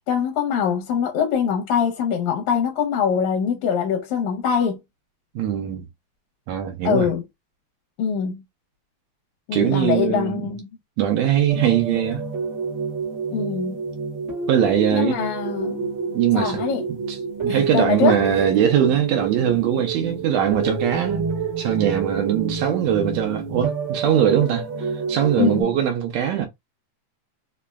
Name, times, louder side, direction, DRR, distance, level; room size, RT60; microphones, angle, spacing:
voice 1, 0.1-4.8 6.8-7.2 8.0-8.4 9.5-10.7 13.3-13.8 14.9-15.9 16.3-16.8 17.5-18.2 25.4-25.7, left 7 dB, 75° left, 2.0 m, -23 dB
voice 2, 5.4-5.9 6.5-7.1 9.5-10.5 11.0-12.2 14.5-15.2 16.1-16.6 17.1-17.2 17.4-21.2 21.6-26.5, right 10 dB, 75° right, 1.7 m, -21 dB
sound 1, 11.5-25.6, right 4 dB, 55° right, 0.8 m, -29 dB
4.9 x 2.0 x 2.3 m
omnidirectional pair, 3.5 m